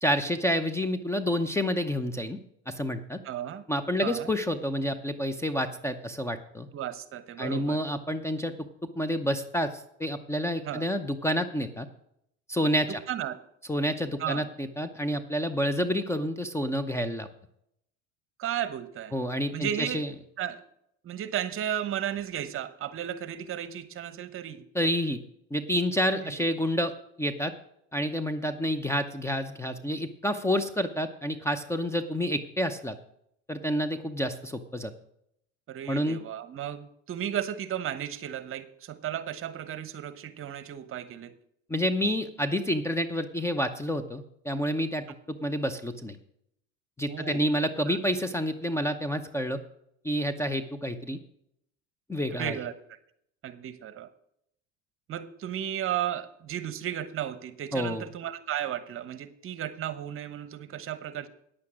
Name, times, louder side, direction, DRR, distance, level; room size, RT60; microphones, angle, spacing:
voice 1, 0.0-2.4 2.7-3.2 3.7-6.7 7.4-8.5 9.0-11.9 12.5-13.0 13.7-17.3 19.1-20.1 24.7-25.2 25.5-26.9 27.2-27.5 27.9-33.0 33.5-34.9 35.9-36.2 41.7-46.2 47.0-49.6 50.0-51.2 52.1-52.5 57.7-58.1, equal, 10° left, 11 dB, 0.7 m, -29 dB
voice 2, 3.2-3.6 4.0-4.3 6.7-7.8 10.6-10.9 13.1-13.4 14.2-14.4 18.4-19.1 19.5-20.0 20.4-20.6 21.0-24.6 26.2-26.4 35.7-41.3 47.1-47.4 47.9-48.0 52.4-52.7 53.4-54.1 55.1-61.3, right 10 dB, 40° right, 13 dB, 1.1 m, -34 dB
9.9 x 8.2 x 6.3 m, 0.74 s
supercardioid pair, 110°, 32 cm